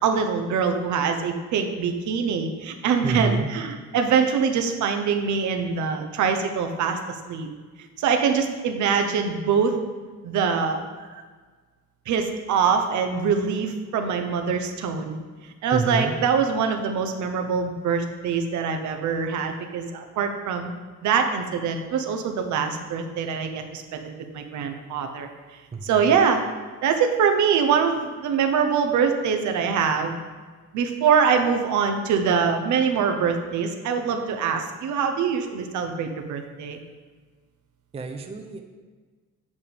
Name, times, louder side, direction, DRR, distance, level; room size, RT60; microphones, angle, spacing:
voice 1, 0.0-7.0 7.3-7.5 8.0-9.8 10.2-11.2 12.1-15.2 15.6-20.7 21.0-24.1 24.3-25.3 25.8-26.4 26.8-30.1 30.7-36.8, right 6 dB, 80° right, 5 dB, 0.9 m, -24 dB
voice 2, 3.0-3.6 15.7-16.2 25.7-26.1 37.9-38.6, right 3 dB, 20° right, 4 dB, 0.5 m, -28 dB
8.5 x 3.6 x 6.6 m, 1.4 s
cardioid pair, 160°, 29 cm